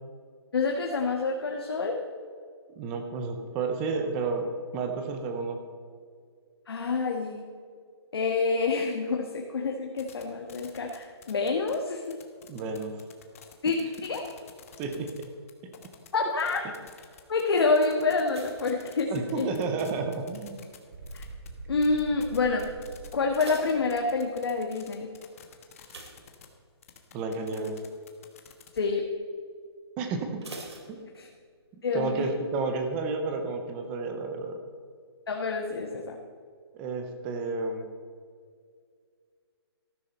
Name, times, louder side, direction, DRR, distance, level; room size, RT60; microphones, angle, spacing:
voice 1, 0.5-2.0 6.7-7.4 8.1-12.2 13.6-13.8 14.0-14.3 16.1-16.6 17.3-19.5 21.1-21.2 21.7-22.7 23.1-25.1 28.7-29.0 31.2-31.3 31.8-32.3 35.3-36.2, left 4 dB, 60° left, 1 dB, 1.4 m, -27 dB
voice 2, 2.8-4.5 4.7-5.6 12.5-13.0 14.8-15.3 19.1-20.6 27.1-27.8 30.0-30.4 30.9-31.0 31.7-34.6 36.7-37.9, right 4 dB, 5° right, 6 dB, 0.4 m, -31 dB
sound 1, 10.0-10.2 10.5-11.7 12.0-21.5 21.8-26.5 26.8-28.8, left 8 dB, 30° left, 1.2 m, -50 dB
sound 2, 18.2-19.7 20.0-20.5 21.1-21.5 21.8-21.9 22.3-22.4 23.0-24.5 25.8-27.0 27.3-27.6 28.0-28.1 30.4-31.6 31.9-32.0, right 2 dB, 75° right, 3.1 m, -46 dB
sound 3, 20.9-24.5, right 2 dB, 50° right, 1.8 m, -44 dB
14.0 x 13.0 x 4.3 m, 2.1 s
hypercardioid pair, 175°, 14 cm